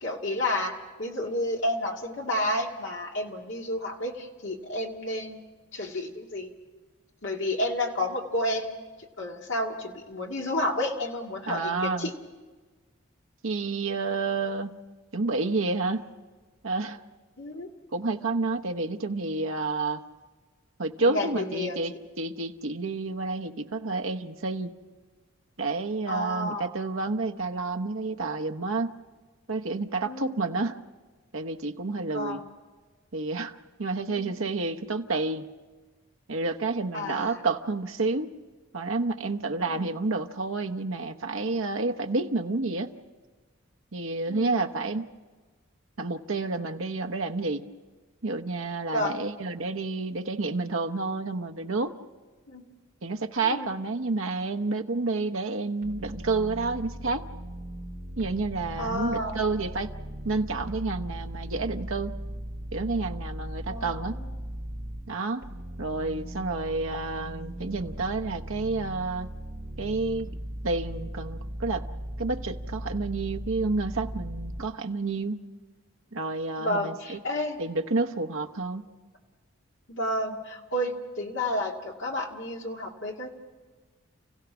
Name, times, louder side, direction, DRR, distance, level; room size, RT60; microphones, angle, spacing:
voice 1, 0.0-5.5 5.7-6.5 7.2-8.8 9.2-12.1 17.4-17.7 21.0-22.0 26.1-26.7 30.0-30.5 32.1-32.4 34.1-34.4 36.9-37.4 39.7-39.9 44.3-44.7 48.9-49.2 52.5-52.6 53.5-53.7 58.8-59.4 63.7-64.3 76.6-77.6 79.9-83.3, left 1 dB, 55° left, 1 dB, 2.1 m, -31 dB
voice 2, 11.5-12.1 13.4-14.8 15.1-16.0 16.6-17.0 17.9-20.0 20.8-24.7 25.6-28.9 29.5-30.8 31.3-32.4 33.1-35.5 36.3-38.3 38.7-42.9 43.9-45.1 46.0-47.6 48.2-51.9 53.0-57.3 58.2-59.9 60.2-62.2 62.7-64.1 65.1-65.5 65.8-69.3 69.8-70.3 70.6-71.9 72.2-75.4 76.1-77.2 77.6-78.9, right 3 dB, 70° right, 5 dB, 1.0 m, -29 dB
sound 1, 55.8-65.0 65.4-74.6, equal, 45° right, 3.1 m, -38 dB
29.5 x 16.0 x 6.1 m, 1.4 s
head